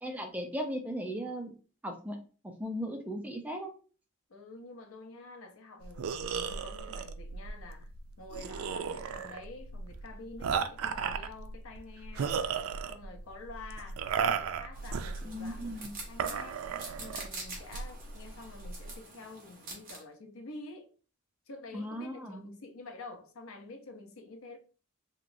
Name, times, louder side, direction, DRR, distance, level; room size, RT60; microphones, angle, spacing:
voice 1, 0.0-1.5 1.8-2.2 2.6-3.7 15.2-15.9 21.7-22.4, equal, 5° right, 0.4 m, -37 dB
voice 2, 4.3-7.9 8.2-12.4 12.9-14.0 14.3-16.6 17.0-20.9 21.5-24.6, left 3 dB, 75° left, 0.6 m, -48 dB
sound 1, 5.8-18.9, right 6 dB, 80° right, 0.3 m, -36 dB
sound 2, 14.7-20.0, right 3 dB, 40° right, 1.1 m, -46 dB
3.0 x 2.8 x 2.6 m
head